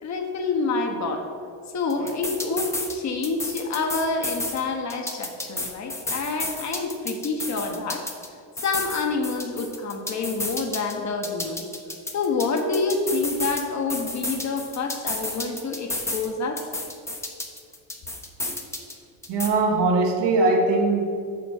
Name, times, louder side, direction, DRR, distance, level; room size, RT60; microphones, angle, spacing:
voice 1, 0.0-1.3 1.7-8.0 8.6-11.6 12.1-16.6, left 3 dB, 40° left, 4 dB, 1.0 m, -27 dB
sound 1, 1.9-3.0 3.2-4.6 4.9-8.3 8.6-10.9 11.2-13.6 13.9-16.3 16.6-18.9 19.2-19.5, left 2 dB, 5° left, 0.7 m, -31 dB
voice 2, 19.3-21.4, right 3 dB, 70° right, 2 dB, 1.4 m, -21 dB
6.9 x 4.3 x 6.3 m, 2.3 s
cardioid pair, 120°, 44 cm